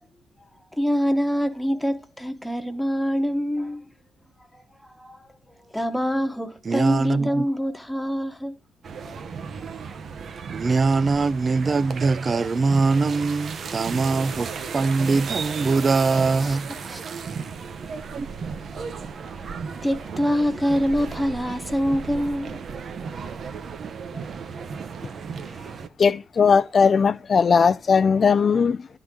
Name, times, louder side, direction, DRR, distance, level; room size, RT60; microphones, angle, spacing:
voice 1, 0.4-3.8 4.5-5.3 5.7-8.6 9.0-9.2 16.4-16.6 16.8-17.0 18.5-22.6 24.1-24.3 25.5-25.7, equal, 5° left, 1.1 m, -26 dB
voice 2, 6.7-7.4 10.5-16.7 18.1-18.3, right 4 dB, 35° right, 0.4 m, -22 dB
sound 1, 8.8-25.9, right 5 dB, 50° right, 0.8 m, -35 dB
voice 3, 26.0-28.9, left 5 dB, 40° left, 0.4 m, -18 dB
11.0 x 3.8 x 4.8 m
cardioid pair, 90°, 0 cm